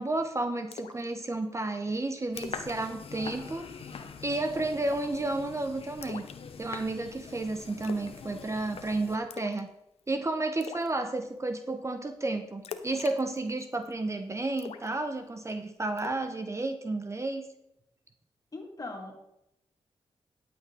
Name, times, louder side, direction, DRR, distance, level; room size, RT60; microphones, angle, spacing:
voice 1, 0.0-3.9 4.2-6.3 6.6-9.7 10.1-17.4, right 2 dB, 30° right, 8 dB, 1.1 m, -32 dB
Splash splatter, 0.7-1.1 1.4-1.5 1.9-2.0 2.3-2.8 3.0-3.2 3.6-3.9 4.8-5.2 6.0-6.9 7.8-8.1 8.4-8.8 9.3-9.7 10.0-10.1 10.6-10.9 12.6-13.9 14.6-15.5 16.0-16.3, left 7 dB, 85° left, 0.8 m, -43 dB
sound 1, 2.3-9.2, left 6 dB, 70° left, 1.1 m, -44 dB
voice 2, 18.5-19.2, left 2 dB, 35° left, 2 dB, 2.7 m, -40 dB
12.0 x 7.9 x 3.8 m, 0.83 s
cardioid pair, 60°, 10 cm